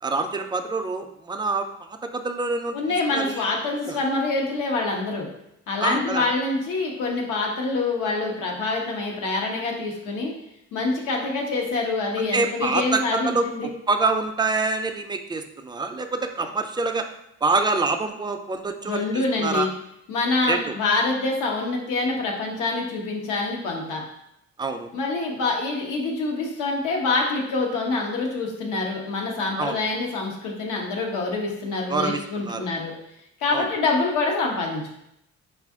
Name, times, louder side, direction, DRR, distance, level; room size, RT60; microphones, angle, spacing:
voice 1, 0.0-2.8 3.1-3.4 3.9-4.0 5.8-6.3 12.2-17.1 17.4-19.7 20.5-20.8 24.6-24.9 29.6-29.8 31.9-32.7 33.5-33.7, right 3 dB, 15° right, 6 dB, 0.3 m, -26 dB
voice 2, 2.7-5.3 5.7-10.3 10.7-13.7 18.8-19.7 20.1-24.0 24.9-32.9 33.4-35.0, left 3 dB, 90° left, 0 dB, 0.9 m, -26 dB
4.3 x 2.4 x 3.5 m, 0.81 s
cardioid pair, 90°, 30 cm